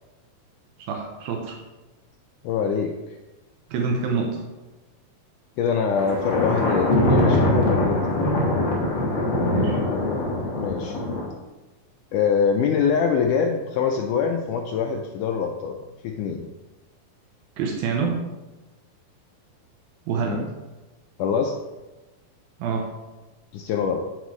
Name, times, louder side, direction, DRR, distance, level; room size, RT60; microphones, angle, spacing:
voice 1, 0.9-1.5 3.7-4.4 9.5-9.8 10.4-10.5 17.6-18.2 20.1-20.4 22.6-22.9, right 5 dB, 85° right, 1 dB, 2.6 m, -26 dB
voice 2, 2.4-3.2 5.6-8.2 10.6-11.0 12.1-15.8 16.0-16.5 20.2-20.5 21.2-21.5 23.5-24.0, left 6 dB, 85° left, 3 dB, 1.8 m, -24 dB
Thunder, 6.0-11.2, left 1 dB, 45° left, 1.6 m, -22 dB
8.2 x 7.9 x 3.1 m, 1.1 s
omnidirectional pair, 4.2 m